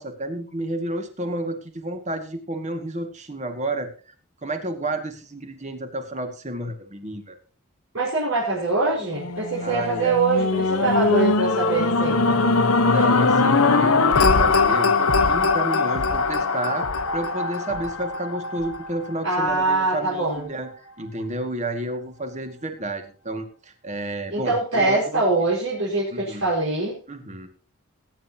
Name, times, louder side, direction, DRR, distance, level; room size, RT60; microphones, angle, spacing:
voice 1, 0.0-3.9 4.4-7.4 9.6-10.2 10.8-11.0 12.8-16.9 17.1-20.7 21.0-25.2 26.1-26.4 27.1-27.5, right 1 dB, 35° right, 6 dB, 2.1 m, -31 dB
voice 2, 7.9-12.4 19.2-20.5 24.3-27.0, right 3 dB, 70° right, -6 dB, 5.2 m, -23 dB
sound 1, 9.1-19.4 20.0-20.1, left 3 dB, 90° left, 1.3 m, -21 dB
20.5 x 10.0 x 2.9 m, 0.39 s
head